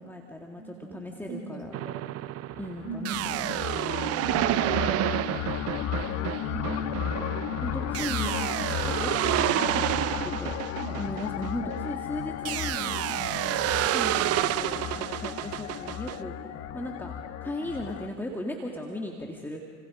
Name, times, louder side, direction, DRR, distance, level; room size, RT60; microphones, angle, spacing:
voice 1, 0.0-1.7 2.6-4.7 6.0-6.7 7.6-8.4 8.7-9.9 10.2-17.1 17.4-19.6, left 1 dB, 5° left, 0 dB, 2.4 m, -38 dB
voice 2, 0.6-1.0 1.3-2.1 2.8-3.5 6.2-7.1 8.2-8.7 9.5-9.8 10.8-11.0 11.6-11.7 12.8-12.9 14.1-14.3, right 2 dB, 20° right, 2 dB, 5.9 m, -40 dB
sound 1, 1.7-11.9 12.4-16.2, right 15 dB, 40° right, 0.8 m, -29 dB
sound 2, 2.5-18.1, left 10 dB, 45° left, 1.4 m, -34 dB
30.0 x 26.5 x 5.2 m, 2.1 s
hypercardioid pair, 85°, 36 cm